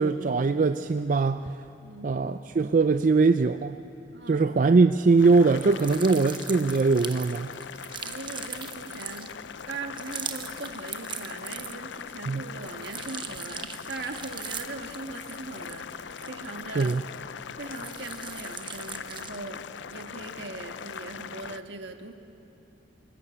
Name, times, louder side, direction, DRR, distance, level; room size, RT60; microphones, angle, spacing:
voice 1, 0.0-1.5 2.0-3.8 4.3-7.5 12.3-12.4 16.8-17.0, right 4 dB, 45° right, 10 dB, 0.4 m, -22 dB
voice 2, 1.8-2.2 4.1-4.8 8.0-9.3 9.7-17.0 17.5-22.1, right 3 dB, 70° right, 5 dB, 1.5 m, -40 dB
Boiling, 5.2-21.6, left 7 dB, 75° left, 0.5 m, -41 dB
sound 1, 5.5-12.0 12.4-17.3 17.6-19.5, right 7 dB, 25° right, 0.8 m, -40 dB
23.5 x 13.5 x 8.6 m, 2.7 s
head